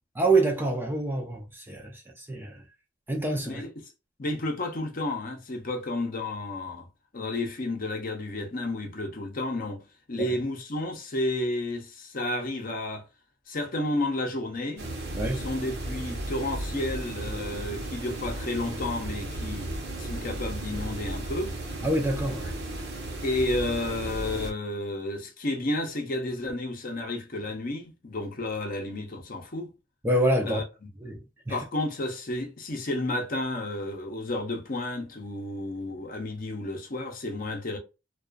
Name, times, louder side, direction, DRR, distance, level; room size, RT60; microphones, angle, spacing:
voice 1, 0.1-2.6 3.1-3.6 10.2-10.4 15.2-15.5 21.8-22.6 30.0-30.6 31.0-31.6, right 2 dB, 10° right, 0.5 m, -27 dB
voice 2, 4.2-6.9 7.1-13.0 13.5-14.9 15.3-21.6 23.2-29.7 30.4-30.6 31.5-37.8, left 2 dB, 45° left, 0.7 m, -31 dB
sound 1, 14.8-24.5, right 1 dB, 55° right, 0.8 m, -35 dB
2.4 x 2.3 x 2.3 m
head